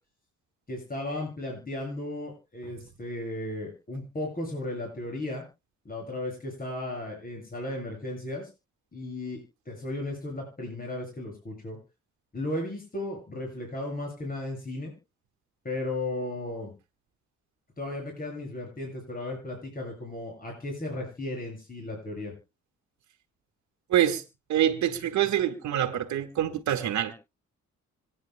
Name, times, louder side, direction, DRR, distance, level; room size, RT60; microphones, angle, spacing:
voice 1, 0.7-5.4 5.8-8.5 8.9-9.4 9.7-11.8 12.3-14.9 15.6-16.7 17.8-22.3, left 1 dB, 30° left, 7.8 m, -35 dB
voice 2, 23.9-24.2 24.5-27.1, right 11 dB, 70° right, 1.7 m, -25 dB
26.0 x 9.6 x 2.2 m
cardioid pair, 90°, 30 cm